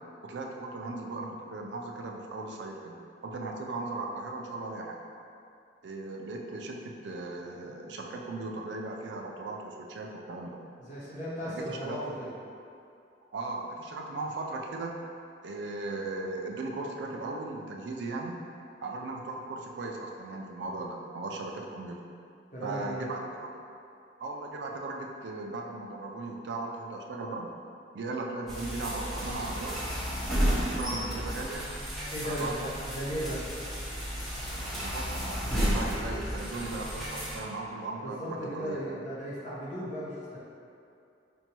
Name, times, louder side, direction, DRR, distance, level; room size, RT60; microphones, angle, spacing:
voice 1, 0.2-5.0 5.8-10.6 11.5-12.2 13.3-14.9 15.4-18.4 18.8-22.0 22.6-23.5 24.2-27.5 27.9-29.8 30.3-31.7 32.2-32.7 34.7-38.8, right 2 dB, 80° right, 0 dB, 0.4 m, -37 dB
voice 2, 10.8-12.3 22.5-23.1 32.1-33.4 38.0-40.4, equal, 45° left, -8 dB, 0.9 m, -36 dB
sound 1, 28.5-37.4, equal, ahead, 0.9 m, -32 dB
5.2 x 2.2 x 2.9 m, 2.6 s
head